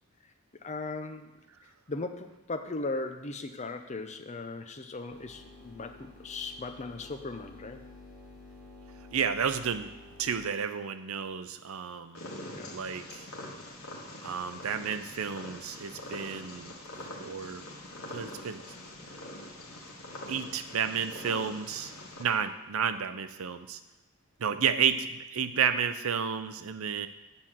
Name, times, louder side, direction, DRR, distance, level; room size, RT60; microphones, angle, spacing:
voice 1, 0.5-1.4 1.9-7.8 12.5-12.8, left 3 dB, 30° left, 7 dB, 0.6 m, -38 dB
sound 1, 5.1-10.4, left 3 dB, 25° right, 3.4 m, -51 dB
voice 2, 9.1-9.9 10.2-12.3 12.7-13.2 14.2-16.7 17.1-17.6 18.1-18.6 20.3-21.9 22.2-23.8 24.4-27.1, right 7 dB, 70° right, 11 dB, 0.6 m, -31 dB
Purr, 12.1-22.2, left 1 dB, 85° left, 1.7 m, -44 dB
8.7 x 4.4 x 7.4 m, 1.1 s
head